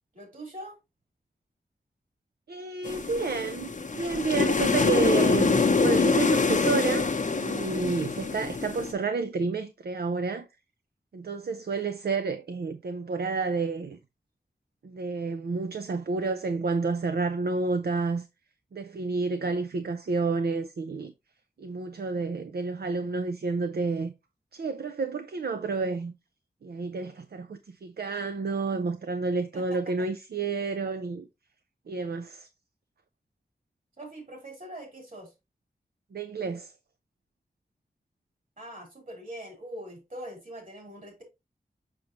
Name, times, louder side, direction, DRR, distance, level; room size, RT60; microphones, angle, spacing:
voice 1, 0.1-0.8 29.5-30.1 34.0-35.3 38.6-41.2, right 1 dB, 50° right, 4.0 m, -42 dB
voice 2, 2.5-10.5 11.1-14.0 14.8-18.3 18.7-21.1 21.6-24.1 24.5-26.1 26.6-31.3 31.9-32.5 36.1-36.7, right 4 dB, 70° right, 0.5 m, -30 dB
sound 1, 2.9-8.9, left 4 dB, 45° left, 0.7 m, -25 dB
6.4 x 5.9 x 2.9 m
wide cardioid pair, 70°, 17 cm